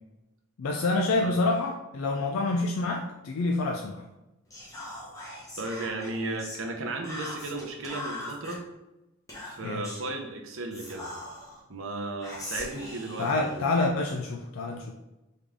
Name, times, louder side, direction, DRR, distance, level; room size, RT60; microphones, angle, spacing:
voice 1, 0.6-4.0 9.6-9.8 13.2-14.9, left 2 dB, 85° left, 2 dB, 0.4 m, -27 dB
Whispering, 4.5-6.6 7.0-8.6 9.3-10.1 10.7-11.6 12.2-14.1, left 1 dB, 15° left, 0.9 m, -41 dB
voice 2, 5.6-8.6 9.4-11.1 11.7-13.6, right 2 dB, 75° right, 2 dB, 0.7 m, -35 dB
3.7 x 3.6 x 3.4 m, 0.99 s
head